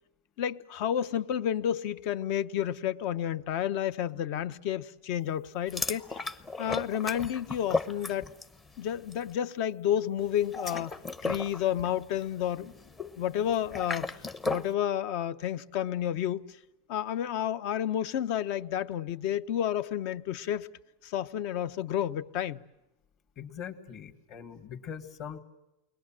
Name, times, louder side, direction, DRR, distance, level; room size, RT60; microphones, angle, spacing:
voice 1, 0.4-6.3 6.6-8.3 8.8-10.9 11.2-12.7 13.2-14.1 14.4-16.4 16.9-20.7 21.0-22.6, left 10 dB, 50° left, 1.0 m, -30 dB
sound 1, 5.7-8.6 8.9-9.2 10.4-14.7, left 3 dB, 15° left, 1.0 m, -35 dB
voice 2, 23.4-25.4, left 8 dB, 35° left, 2.3 m, -42 dB
29.5 x 22.0 x 7.5 m
supercardioid pair, 150°, 0 cm